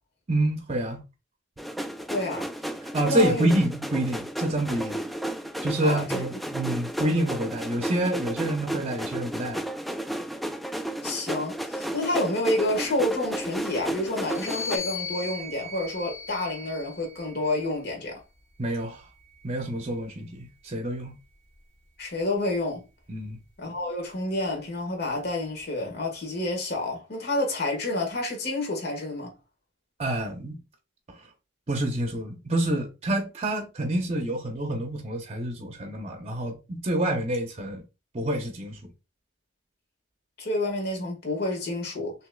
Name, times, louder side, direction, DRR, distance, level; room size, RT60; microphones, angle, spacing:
voice 1, 0.3-1.0 2.9-5.0 5.6-9.6 18.6-19.1 19.4-21.1 23.1-23.4 30.0-30.6 31.1-31.3 31.7-37.8 38.1-38.8, right 1 dB, 35° right, 0.7 m, -27 dB
sound 1, 1.6-14.8, right 1 dB, ahead, 0.3 m, -33 dB
voice 2, 2.0-2.5 3.0-3.5 5.8-6.2 11.0-18.2 22.0-22.8 23.6-29.3 40.4-42.1, left 1 dB, 60° left, 1.7 m, -29 dB
sound 2, 14.2-17.8 18.6-20.2, left 4 dB, 40° left, 2.2 m, -39 dB
6.1 x 3.0 x 2.3 m
head